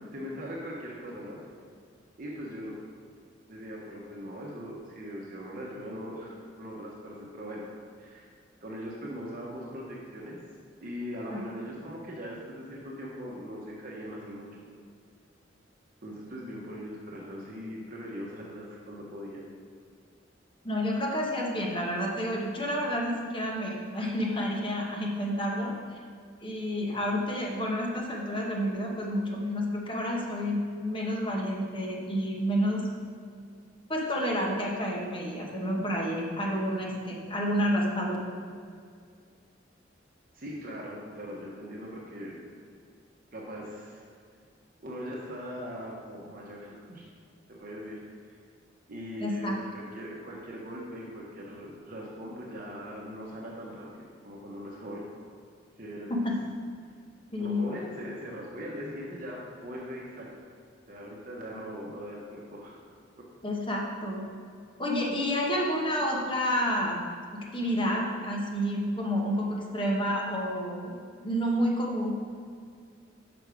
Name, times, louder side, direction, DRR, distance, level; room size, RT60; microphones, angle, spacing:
voice 1, 0.1-1.4 2.2-2.7 3.5-7.6 8.0-8.3 8.6-10.4 10.8-14.6 16.0-19.4 40.3-42.4 43.3-44.1 44.8-47.1 47.5-48.4 48.9-55.0 55.8-56.3 57.4-60.3 60.9-62.8 63.2-63.3, equal, 45° right, -3 dB, 0.9 m, -40 dB
voice 2, 20.6-25.7 26.4-32.9 33.9-38.2 49.2-49.6 56.1-56.5 57.3-57.7 63.4-64.3 64.8-67.0 67.3-72.1, equal, 25° left, -2 dB, 0.9 m, -29 dB
6.0 x 5.3 x 4.8 m, 2.2 s
head